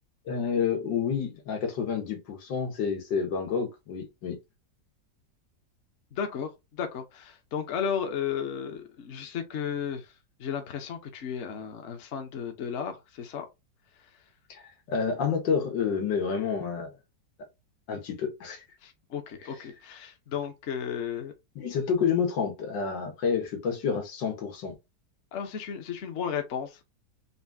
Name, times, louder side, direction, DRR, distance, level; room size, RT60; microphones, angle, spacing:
voice 1, 0.3-4.4 14.5-16.9 17.9-18.7 21.6-24.7, left 6 dB, 85° left, 1.9 m, -29 dB
voice 2, 6.1-10.1 10.4-13.5 18.8-21.3 25.3-26.8, left 7 dB, 50° left, 0.9 m, -34 dB
4.1 x 2.7 x 3.5 m
omnidirectional pair, 1.9 m